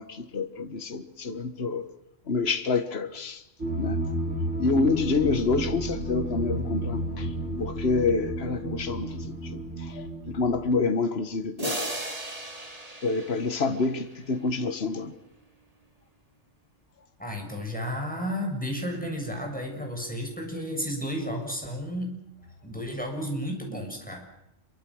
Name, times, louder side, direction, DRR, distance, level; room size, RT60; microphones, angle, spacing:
voice 1, 0.0-1.9 2.3-3.4 3.8-4.0 4.6-7.3 7.6-9.6 9.9-11.9 13.0-15.1, left 4 dB, 55° left, 1.8 m, -27 dB
sound 1, 3.6-10.7, right 1 dB, 70° right, 3.2 m, -32 dB
sound 2, 11.6-14.3, right 1 dB, 30° right, 3.3 m, -36 dB
voice 2, 17.2-22.2 22.6-24.3, equal, 5° left, 7.2 m, -32 dB
27.0 x 24.5 x 6.5 m
omnidirectional pair, 1.3 m